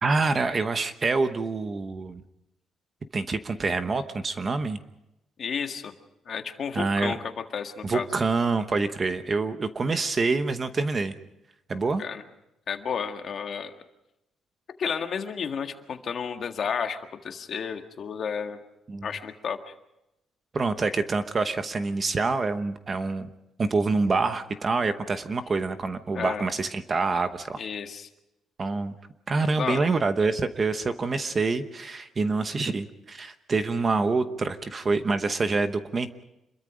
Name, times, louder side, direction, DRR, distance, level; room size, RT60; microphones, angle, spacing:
voice 1, 0.0-2.2 3.1-4.8 6.7-7.1 7.8-11.1 11.7-12.0 18.9-19.1 20.5-23.3 23.6-27.6 28.6-28.9 29.3-36.2, right 3 dB, 25° right, 10 dB, 1.0 m, -26 dB
voice 2, 5.4-5.9 6.3-8.1 12.0-12.2 12.7-13.7 14.8-17.0 17.2-18.6 19.0-19.7 26.1-26.4 27.6-28.1 29.4-29.8, left 6 dB, 40° left, 6 dB, 1.7 m, -32 dB
27.5 x 22.5 x 5.1 m, 0.90 s
cardioid pair, 180°, 0 cm